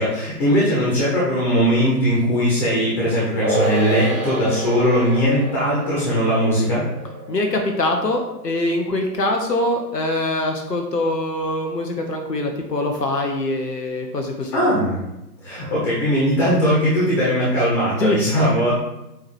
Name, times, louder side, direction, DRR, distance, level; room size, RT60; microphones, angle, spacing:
voice 1, 0.0-6.8 14.5-15.0 15.4-18.7, equal, 20° left, -6 dB, 1.6 m, -19 dB
sound 1, 3.4-10.1 10.4-10.5, right 1 dB, 5° left, 0.8 m, -29 dB
voice 2, 7.3-14.6 18.0-18.2, left 1 dB, 80° left, 3 dB, 1.2 m, -23 dB
8.4 x 3.1 x 4.7 m, 0.91 s
figure-of-eight pair, 135°, 48 cm